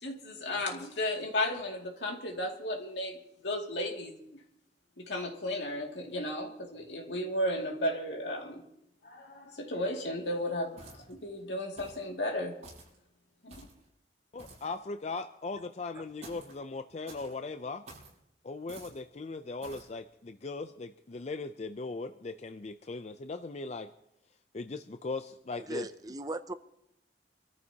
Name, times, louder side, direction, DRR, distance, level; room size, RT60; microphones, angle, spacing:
voice 1, 0.0-4.2 5.0-8.6 9.0-12.5 13.4-13.7, left 1 dB, 75° left, 1 dB, 2.4 m, -34 dB
sound 1, 10.8-11.2 11.8-12.1 12.6-13.0 13.5-13.8 14.4-14.8 16.2-16.6 17.1-17.4 17.9-18.2 18.7-19.0 19.6-19.9, right 2 dB, 40° right, 6.8 m, -50 dB
voice 2, 14.3-17.8 18.4-23.9 24.5-25.9, left 3 dB, 40° left, 8 dB, 0.4 m, -39 dB
voice 3, 25.6-26.5, right 2 dB, 20° right, 11 dB, 0.5 m, -38 dB
27.0 x 14.0 x 2.9 m, 0.80 s
head